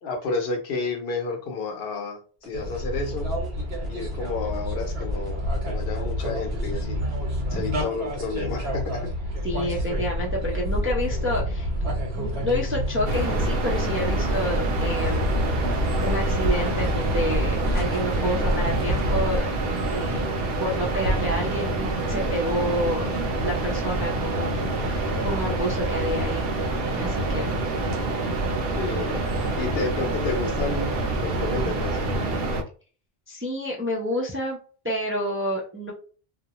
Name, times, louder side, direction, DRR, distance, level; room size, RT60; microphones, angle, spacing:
voice 1, 0.0-3.3 3.9-7.0 7.5-9.0 9.6-9.7 28.8-29.2 29.6-32.1, left 4 dB, 70° left, 3 dB, 0.9 m, -31 dB
sound 1, 2.4-8.7, equal, ahead, 1.1 m, -49 dB
sound 2, 2.5-19.4, equal, 90° right, 1.0 m, -28 dB
voice 2, 9.4-11.7 12.1-15.3 16.0-19.4 19.9-20.3 20.6-23.1 23.4-26.5 27.0-27.6 33.3-34.6 34.8-35.9, equal, 20° right, -3 dB, 0.4 m, -29 dB
sound 3, 13.1-32.6, right 2 dB, 70° right, 0.8 m, -27 dB
2.4 x 2.1 x 2.9 m, 0.40 s
omnidirectional pair, 1.0 m